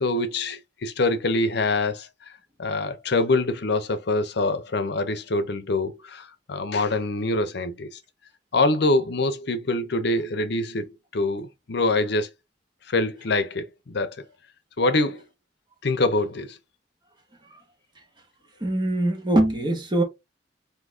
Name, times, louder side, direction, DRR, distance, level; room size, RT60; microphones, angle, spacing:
voice 1, 0.0-8.0 8.5-12.3 12.9-14.2 14.8-15.3 15.8-16.6, left 2 dB, 65° left, 0.7 m, -25 dB
voice 2, 18.6-20.0, right 1 dB, 25° right, 1.2 m, -22 dB
3.9 x 2.8 x 3.5 m
head